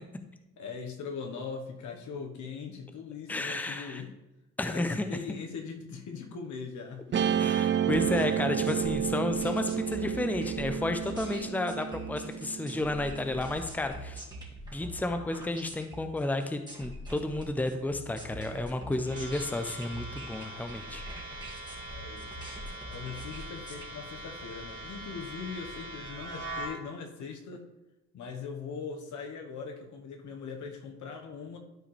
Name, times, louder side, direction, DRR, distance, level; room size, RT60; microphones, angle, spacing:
voice 1, 0.6-4.1 4.7-7.5 21.9-27.7 28.1-31.6, left 5 dB, 75° left, 4 dB, 1.3 m, -41 dB
voice 2, 3.3-4.0 4.6-5.4 7.4-14.2 14.7-21.0, left 2 dB, 5° left, 7 dB, 0.7 m, -32 dB
Guitar, 7.1-13.6, right 9 dB, 40° right, 0.5 m, -31 dB
sound 1, 7.9-23.9, right 1 dB, 15° right, 2.2 m, -45 dB
sound 2, 19.1-26.7, right 1 dB, 70° right, 2.8 m, -42 dB
12.0 x 4.7 x 3.3 m, 1.0 s
cardioid pair, 90°, 30 cm